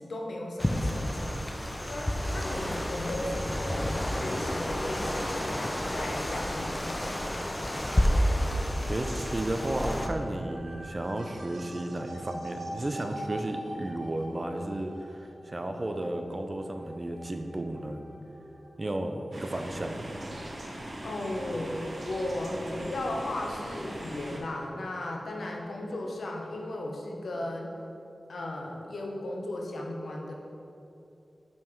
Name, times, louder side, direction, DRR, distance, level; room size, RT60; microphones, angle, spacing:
voice 1, 0.0-1.5 1.9-7.2 21.0-27.8 28.3-30.3, left 1 dB, 85° left, 0 dB, 0.9 m, -36 dB
sound 1, 0.6-10.1, equal, 20° left, 0.6 m, -30 dB
sound 2, 8.5-19.5, right 1 dB, 85° right, 1.0 m, -44 dB
voice 2, 8.9-18.0 18.8-20.1, right 1 dB, 35° right, 5 dB, 0.5 m, -33 dB
sound 3, 19.3-24.4, right 1 dB, 55° right, 1.1 m, -40 dB
5.5 x 5.3 x 4.6 m, 2.8 s
wide cardioid pair, 70°, 0 cm